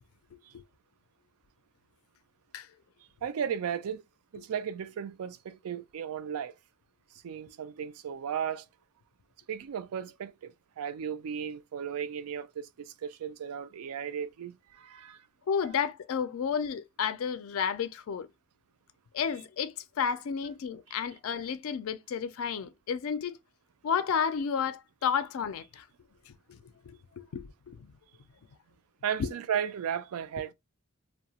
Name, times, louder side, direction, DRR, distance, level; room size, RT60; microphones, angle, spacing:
voice 1, 3.2-4.0 4.3-6.5 7.2-8.7 9.5-15.3 29.0-30.5, right 8 dB, 85° right, 0.3 m, -35 dB
voice 2, 15.5-18.3 19.1-23.4 23.8-25.9 26.3-27.9 29.2-29.3, left 7 dB, 70° left, 0.4 m, -32 dB
2.7 x 2.1 x 2.8 m
head